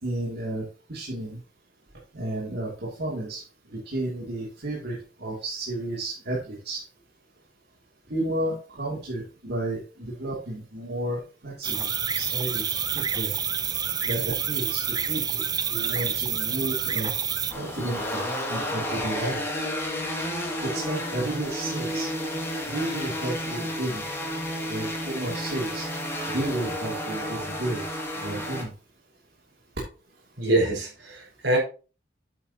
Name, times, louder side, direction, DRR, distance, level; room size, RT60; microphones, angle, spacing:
voice 1, 0.0-1.4 2.1-3.4 3.7-6.8 8.1-13.3 14.0-15.4 15.7-17.1 17.5-19.4 20.6-22.1 22.7-24.0 24.7-25.9 26.3-27.8 28.2-28.7, right 1 dB, 60° right, -5 dB, 2.5 m, -32 dB
sound 1, 11.6-17.5, right 8 dB, 20° right, 0.4 m, -28 dB
sound 2, 17.5-28.6, equal, 15° left, 2.2 m, -31 dB
voice 2, 30.4-31.6, right 2 dB, 75° right, -2 dB, 4.9 m, -24 dB
8.8 x 8.6 x 2.8 m, 0.35 s
head